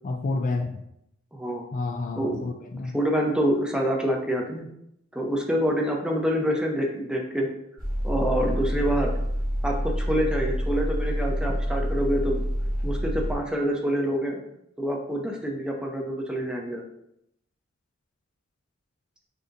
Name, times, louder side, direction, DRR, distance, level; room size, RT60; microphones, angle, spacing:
voice 1, 0.0-0.8 1.7-3.0, left 3 dB, 40° left, 4 dB, 0.3 m, -29 dB
voice 2, 1.3-1.6 2.2-2.5 2.9-4.7 5.1-7.5 8.0-9.1 9.6-12.4 12.8-14.4 14.8-16.8, equal, 5° right, 0 dB, 0.6 m, -26 dB
sound 1, 7.8-13.3, equal, 45° right, 1.5 m, -27 dB
6.4 x 2.8 x 2.5 m, 0.77 s
head